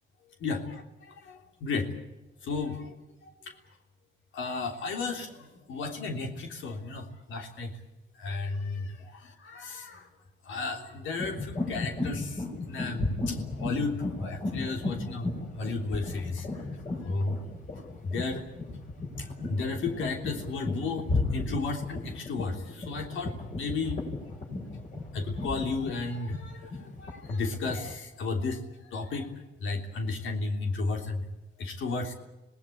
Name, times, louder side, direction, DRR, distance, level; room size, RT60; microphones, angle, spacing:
voice 1, 0.4-1.9 2.4-2.9 3.2-3.5 4.3-7.7 8.2-10.1 10.4-16.6 17.0-17.4 18.0-18.4 19.2-24.1 25.1-29.3 29.6-31.3 31.6-32.1, left 3 dB, 75° left, 4 dB, 3.3 m, -34 dB
sound 1, 11.2-27.9, left 2 dB, 40° left, 7.0 m, -34 dB
26.0 x 18.5 x 8.6 m, 1.0 s
cardioid pair, 90°, 20 cm